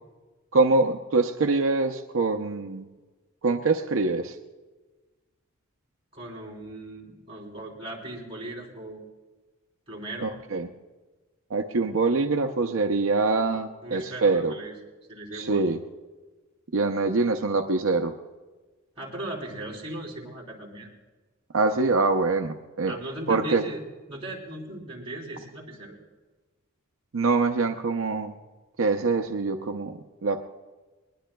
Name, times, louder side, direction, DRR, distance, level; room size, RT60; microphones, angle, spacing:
voice 1, 0.5-2.9 3.4-4.4 10.2-10.7 11.5-14.5 15.3-15.8 16.7-18.1 21.5-22.9 23.3-23.6 27.1-28.3 28.8-30.4, right 3 dB, 80° right, 4 dB, 0.6 m, -24 dB
voice 2, 6.1-9.0 9.9-10.3 13.8-14.8 15.1-15.7 19.0-20.9 22.9-23.8 24.1-26.0, right 1 dB, 30° right, -3 dB, 3.4 m, -38 dB
20.5 x 20.5 x 2.3 m, 1.3 s
head